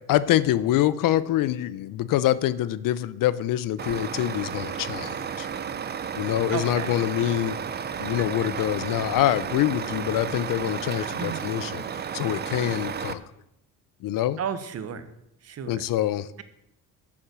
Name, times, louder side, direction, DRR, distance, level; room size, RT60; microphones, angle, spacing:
voice 1, 0.1-5.5 6.2-7.6 8.0-13.2 14.0-14.4 15.7-16.3, left 13 dB, 65° left, 18 dB, 0.6 m, -25 dB
Truck, 3.8-13.1, right 7 dB, 30° right, 0.6 m, -33 dB
voice 2, 6.5-6.9 11.2-11.5 14.4-15.1 15.4-15.8, right 8 dB, 45° right, 11 dB, 1.0 m, -33 dB
9.4 x 7.2 x 6.7 m, 0.82 s
cardioid pair, 130°, 35 cm